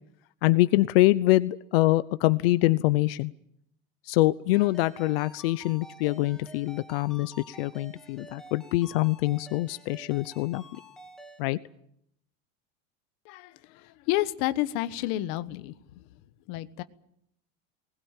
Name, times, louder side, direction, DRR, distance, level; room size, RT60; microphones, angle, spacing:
voice 1, 0.4-3.3 4.1-10.6 11.4-11.6, left 18 dB, 80° left, 15 dB, 0.8 m, -24 dB
Ringtone, 4.5-11.4, equal, ahead, 2.3 m, -49 dB
voice 2, 14.1-15.7 16.5-16.8, left 16 dB, 50° left, 12 dB, 1.2 m, -29 dB
20.5 x 20.0 x 9.0 m, 0.74 s
cardioid pair, 170°, 29 cm